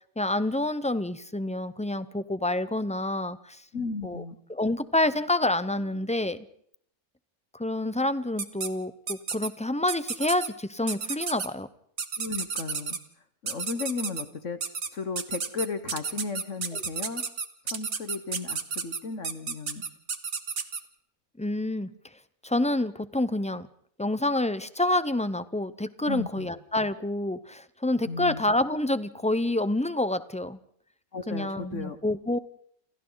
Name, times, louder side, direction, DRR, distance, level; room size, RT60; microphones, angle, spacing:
voice 1, 0.2-3.6 4.0-4.2 4.5-6.4 7.5-11.7 21.4-21.9 22.4-23.7 24.0-30.6 31.3-32.4, left 1 dB, 5° left, 13 dB, 0.5 m, -28 dB
voice 2, 3.7-4.4 12.2-13.0 13.4-14.6 14.9-17.2 17.6-19.9 26.1-26.5 28.1-28.4 31.1-32.0, left 4 dB, 55° left, 10 dB, 1.6 m, -35 dB
sound 1, 8.4-8.7 9.1-9.5 9.9-10.5 10.9-11.5 12.0-13.0 13.5-14.2 14.6-14.9 15.2-20.8, right 5 dB, 55° right, 1.7 m, -31 dB
28.5 x 28.0 x 4.0 m, 0.66 s
omnidirectional pair, 1.6 m